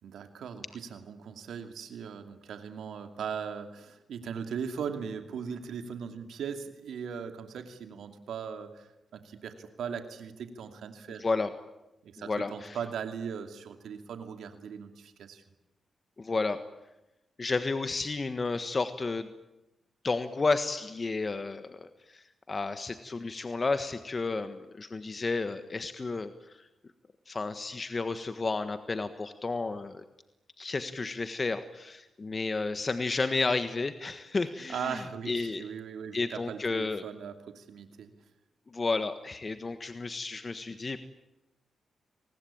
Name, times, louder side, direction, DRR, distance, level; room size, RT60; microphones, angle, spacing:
voice 1, 0.0-11.3 12.0-15.4 34.7-38.1, right 7 dB, 80° right, 7 dB, 2.6 m, -39 dB
voice 2, 11.2-11.5 12.2-12.8 16.2-16.6 17.4-19.3 20.0-21.8 22.1-26.7 27.3-30.0 30.6-35.6 36.1-37.0 38.7-41.0, left 3 dB, 40° left, 9 dB, 1.5 m, -32 dB
28.5 x 20.0 x 8.8 m, 0.96 s
cardioid pair, 60°, 0 cm